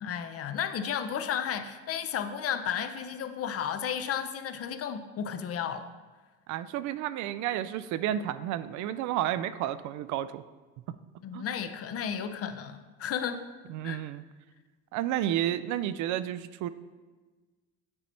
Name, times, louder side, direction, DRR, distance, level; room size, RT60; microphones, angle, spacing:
voice 1, 0.0-5.9 11.2-13.5 13.8-14.0, left 8 dB, 45° left, 9 dB, 0.6 m, -33 dB
voice 2, 6.5-10.4 11.3-11.5 13.7-14.2 14.9-16.7, right 12 dB, 60° right, 14 dB, 0.4 m, -31 dB
8.7 x 4.0 x 4.4 m, 1.3 s
supercardioid pair, 80°, 33 cm